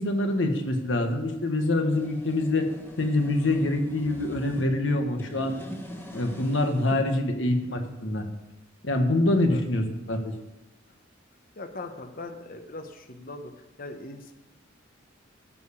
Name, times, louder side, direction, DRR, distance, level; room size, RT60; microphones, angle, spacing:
voice 1, 0.0-2.7 3.0-5.6 6.1-8.2 8.8-10.3, left 2 dB, 70° left, 4 dB, 1.4 m, -25 dB
sound 1, 1.9-4.7 5.1-7.0, equal, 10° left, 1.3 m, -42 dB
voice 2, 11.6-13.5 13.8-14.3, left 2 dB, 45° left, 6 dB, 1.0 m, -40 dB
13.5 x 4.9 x 7.0 m, 1.0 s
head